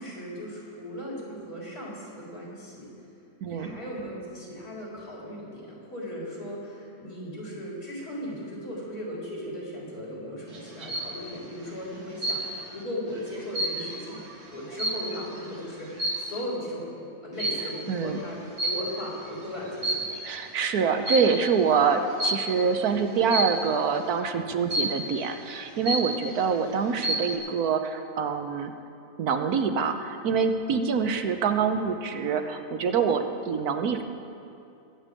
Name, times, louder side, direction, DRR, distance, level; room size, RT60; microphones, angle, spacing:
voice 1, 0.0-2.9 3.4-16.9 17.2-20.1, equal, 85° left, -5 dB, 4.4 m, -37 dB
voice 2, 3.4-3.8 17.9-18.2 20.3-28.7 29.2-34.0, right 6 dB, 80° right, 7 dB, 1.4 m, -25 dB
sound 1, 10.5-11.2 12.2-12.7 13.1-15.4 15.9-16.4 17.4-17.8 18.6-19.2 19.7-20.4 21.1-21.4 22.2-22.6 23.3-23.7 24.7-25.2 25.6-25.7 25.9-26.5 26.8-27.4, right 1 dB, 50° right, 1.9 m, -29 dB
22.0 x 8.7 x 5.2 m, 2.6 s
omnidirectional pair, 1.6 m